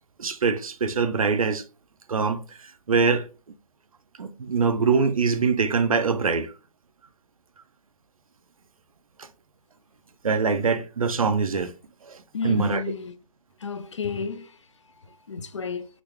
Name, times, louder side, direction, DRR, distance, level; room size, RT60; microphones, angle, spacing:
voice 1, 0.2-1.6 2.1-3.3 4.2-6.5 9.2-9.3 10.2-11.7 12.0-12.8, right 5 dB, 75° right, 0.6 m, -24 dB
voice 2, 12.3-13.1 13.6-14.5 15.3-15.9, left 6 dB, 55° left, 0.5 m, -31 dB
3.9 x 2.3 x 3.0 m
hypercardioid pair, 165°, 18 cm